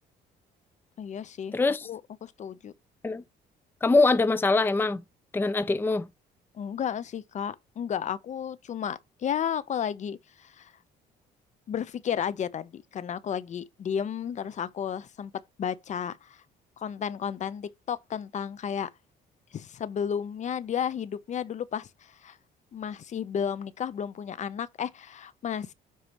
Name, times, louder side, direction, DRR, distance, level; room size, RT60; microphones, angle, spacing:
voice 1, 1.0-1.6 1.8-2.7 6.5-10.7 11.7-15.3 15.6-16.4 16.8-18.9 19.5-22.4 22.7-25.7, left 8 dB, 45° left, 0.8 m, -33 dB
voice 2, 1.5-1.9 3.0-3.2 3.8-5.0 5.3-6.1, left 3 dB, 10° left, 0.6 m, -23 dB
13.0 x 4.8 x 3.0 m
cardioid pair, 110°, 17 cm